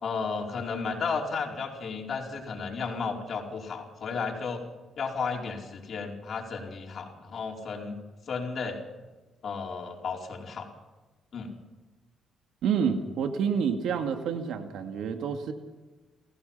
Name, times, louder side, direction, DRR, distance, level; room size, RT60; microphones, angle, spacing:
voice 1, 0.0-4.6 5.0-8.0 8.3-8.8 9.4-10.7 11.3-11.5, left 5 dB, 55° left, 1 dB, 4.7 m, -33 dB
voice 2, 12.6-15.5, right 7 dB, 80° right, 6 dB, 2.3 m, -28 dB
28.5 x 16.0 x 5.7 m, 1.2 s
cardioid pair, 80°, 0 cm